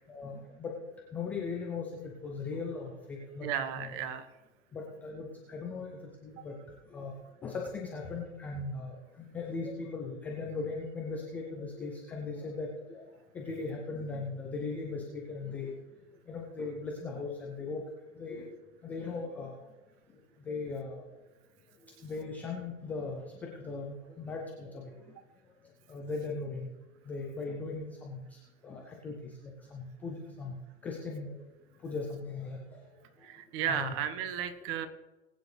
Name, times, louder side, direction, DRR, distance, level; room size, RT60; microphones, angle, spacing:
voice 1, 0.1-0.7 1.1-4.0 4.7-6.6 6.9-7.1 7.4-13.0 13.3-15.8 16.3-17.8 18.2-18.5 18.8-19.5 20.4-21.0 21.8-24.9 25.9-26.7 27.1-29.2 29.4-30.6 30.8-31.4 31.8-32.8 33.7-34.0, left 4 dB, 5° left, 0 dB, 0.3 m, -38 dB
voice 2, 3.4-4.3 33.2-34.9, right 9 dB, 30° right, 10 dB, 1.3 m, -34 dB
20.0 x 9.1 x 3.3 m, 1.1 s
hypercardioid pair, 125°, 42 cm